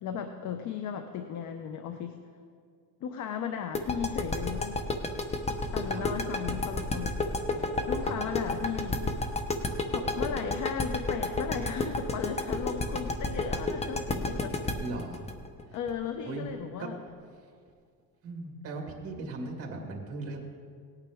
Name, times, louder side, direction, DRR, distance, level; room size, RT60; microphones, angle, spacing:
voice 1, 0.0-2.2 3.0-4.8 5.7-7.2 7.8-9.0 9.9-14.7 15.7-17.0, left 7 dB, 55° left, 7 dB, 0.8 m, -36 dB
sound 1, 3.7-16.5, left 2 dB, 20° left, 0.9 m, -30 dB
sound 2, 5.2-10.5, equal, 75° left, 1.6 m, -48 dB
voice 2, 14.8-15.3 16.2-16.4 16.8-16.9 18.2-20.4, right 3 dB, 40° right, 0 dB, 2.3 m, -38 dB
18.0 x 9.1 x 3.5 m, 2.1 s
cardioid pair, 125°, 35 cm